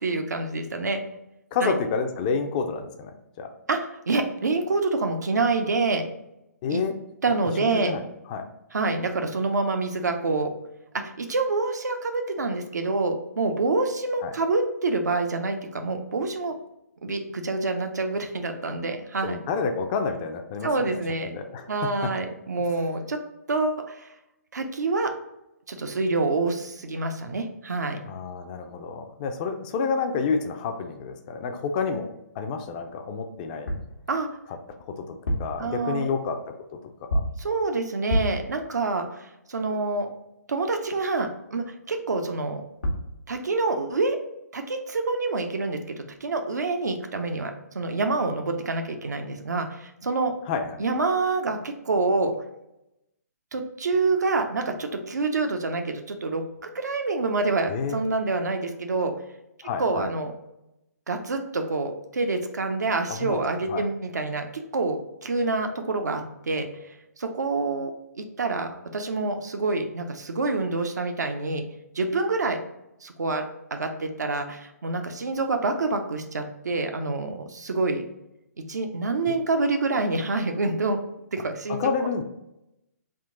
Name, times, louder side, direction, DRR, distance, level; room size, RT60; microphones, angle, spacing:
voice 1, 0.0-1.0 1.6-1.7 3.7-3.8 4.1-6.0 6.7-6.8 7.2-8.0 8.7-10.5 11.0-16.6 17.0-19.4 20.6-21.3 21.7-23.2 23.5-24.1 24.5-25.1 25.7-28.0 34.1-34.3 35.6-36.1 37.4-40.1 40.5-42.6 43.3-44.2 44.5-50.3 50.8-52.3 53.5-56.4 56.7-59.1 59.8-60.3 61.1-64.5 64.7-66.7 67.2-67.9 68.2-71.6 71.9-72.6 73.0-73.4 73.7-78.0 78.7-81.0 81.3-81.9, right 3 dB, 80° right, 5 dB, 0.6 m, -27 dB
voice 2, 1.5-3.5 6.6-6.9 7.6-8.0 8.3-8.4 14.2-14.3 19.2-20.9 21.2-21.7 28.0-32.1 32.4-33.7 34.9-36.4 36.7-37.2 50.5-50.8 57.7-58.0 59.6-60.1 63.1-63.4 63.7-63.9 79.3-79.4 81.8-82.2, left 5 dB, 25° left, 6 dB, 0.4 m, -29 dB
sound 1, 33.7-34.0 35.1-35.6 37.1-37.5 38.1-38.5 42.5-42.6 42.8-43.2, equal, 90° left, 0.9 m, -27 dB
3.7 x 2.4 x 3.7 m, 0.88 s
hypercardioid pair, 145°, 9 cm